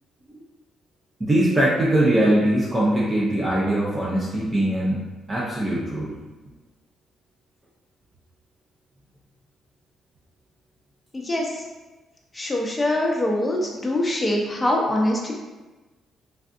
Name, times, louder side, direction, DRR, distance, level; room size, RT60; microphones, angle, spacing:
voice 1, 1.2-5.0 5.3-6.1, right 1 dB, 20° right, -6 dB, 0.6 m, -21 dB
voice 2, 11.1-11.5 12.3-15.3, left 1 dB, 20° left, -1 dB, 0.6 m, -23 dB
3.3 x 2.5 x 2.5 m, 1.2 s
cardioid pair, 90°, 0 cm